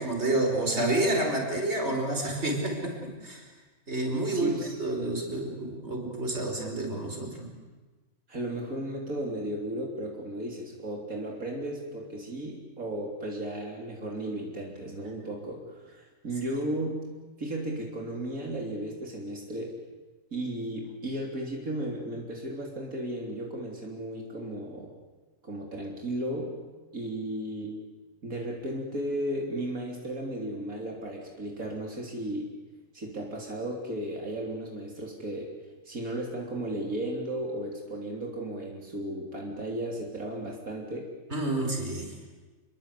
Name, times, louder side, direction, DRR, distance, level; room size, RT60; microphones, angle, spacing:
voice 1, 0.0-3.5 3.9-7.5 41.3-42.1, right 2 dB, 50° right, 2 dB, 5.4 m, -29 dB
voice 2, 4.2-4.8 8.3-17.1 17.4-19.8 20.3-24.9 25.4-26.6 26.9-27.8 28.2-32.5 32.9-35.5 35.9-41.1, right 1 dB, 85° right, -1 dB, 4.0 m, -35 dB
29.0 x 22.0 x 8.4 m, 1.3 s
omnidirectional pair, 1.4 m